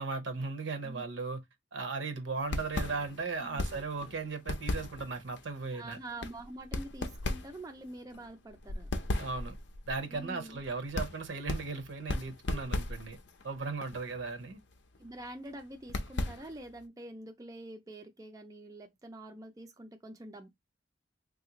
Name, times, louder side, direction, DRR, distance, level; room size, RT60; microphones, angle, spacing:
voice 1, 0.0-1.4 1.7-6.0 9.2-9.5 9.9-13.2 13.4-14.6, right 4 dB, 70° right, 0.7 m, -37 dB
sound 1, 2.4-16.8, left 2 dB, 60° left, 0.5 m, -38 dB
voice 2, 3.4-3.8 5.7-8.9 10.1-10.6 12.5-12.6 15.0-20.5, right 1 dB, 20° right, 0.3 m, -46 dB
3.4 x 2.4 x 2.7 m
head